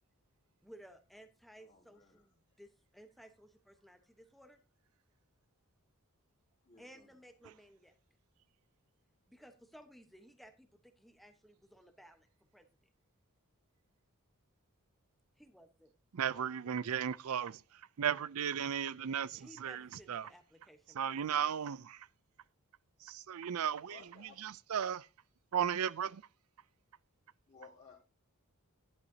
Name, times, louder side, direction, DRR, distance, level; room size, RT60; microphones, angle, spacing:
voice 1, 0.6-4.6 6.8-7.9 9.3-12.3 12.5-12.7 15.4-15.9 19.3-21.4, equal, ahead, 1.0 m, -58 dB
voice 2, 1.6-2.3 6.6-7.1 16.3-16.9 23.8-24.5 27.5-28.0, left 4 dB, 30° left, 2.2 m, -59 dB
voice 3, 16.1-17.6 18.0-19.8 20.1-20.3 21.0-22.0 23.1-24.0 24.7-25.0 25.5-26.2, right 8 dB, 75° right, 0.5 m, -35 dB
11.5 x 10.5 x 2.7 m
head